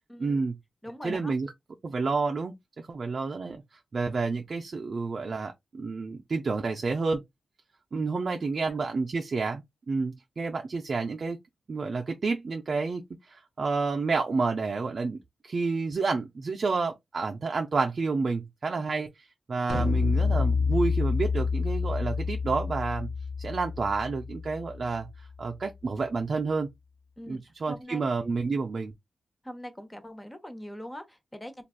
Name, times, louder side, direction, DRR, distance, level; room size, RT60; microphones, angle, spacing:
voice 1, 0.2-0.6 1.0-1.5 1.8-3.6 3.9-7.2 7.9-11.4 11.7-23.1 23.4-26.7 27.3-28.9, right 4 dB, 55° right, 0.4 m, -30 dB
voice 2, 0.8-1.3 27.2-28.0 29.4-31.6, equal, 15° left, 0.8 m, -42 dB
sound 1, 19.7-25.1, left 5 dB, 70° left, 0.7 m, -28 dB
3.3 x 2.3 x 2.4 m
cardioid pair, 60°, 0 cm